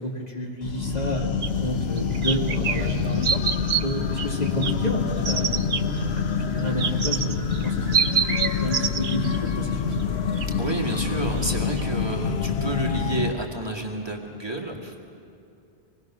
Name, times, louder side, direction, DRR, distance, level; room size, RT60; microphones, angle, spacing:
voice 1, 0.0-3.4 3.8-5.7 6.1-9.9, equal, 40° left, -1 dB, 2.2 m, -30 dB
sound 1, 0.6-13.3, left 6 dB, 90° left, 1.1 m, -26 dB
sound 2, 1.4-1.5 2.0-2.9 3.2-3.8 4.2-4.7 5.2-5.8 6.6-9.5 10.0-10.1 10.4-11.0 11.4-11.5 11.8-11.9, right 6 dB, 55° right, 1.0 m, -26 dB
voice 2, 10.6-15.1, right 2 dB, 25° right, 0 dB, 2.0 m, -30 dB
26.0 x 20.0 x 6.2 m, 2.6 s
omnidirectional pair, 1.0 m